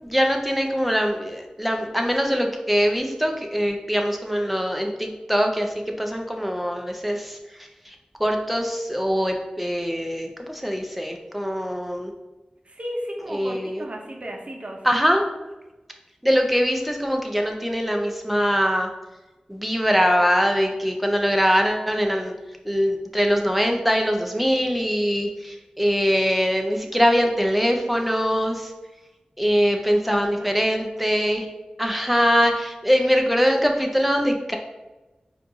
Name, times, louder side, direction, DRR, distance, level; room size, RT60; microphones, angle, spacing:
voice 1, 0.0-7.4 7.9-12.1 13.3-13.8 14.8-15.2 16.2-18.9 19.5-22.3 22.7-28.7 29.4-31.5 31.8-34.6, equal, 5° right, 3 dB, 0.7 m, -22 dB
voice 2, 12.6-14.8 30.4-30.6, equal, 55° right, 1 dB, 0.7 m, -34 dB
4.4 x 2.5 x 3.7 m, 1.1 s
cardioid pair, 45°, 3 cm